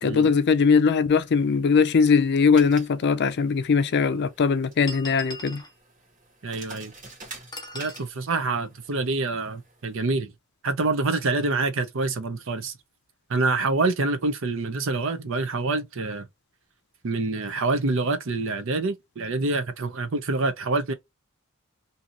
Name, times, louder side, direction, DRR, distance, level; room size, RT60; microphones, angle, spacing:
voice 1, 0.0-5.6, left 5 dB, 55° left, 0.4 m, -20 dB
sound 1, 1.2-10.1, right 3 dB, 40° right, 1.4 m, -48 dB
sound 2, 2.9-3.0 3.9-4.0 4.9-5.7 7.5-8.1, left 1 dB, 20° left, 0.7 m, -38 dB
voice 2, 6.4-6.9 7.7-10.3 10.6-12.7 13.3-16.3 17.0-20.9, right 3 dB, 70° right, 0.7 m, -26 dB
2.7 x 2.5 x 2.7 m
head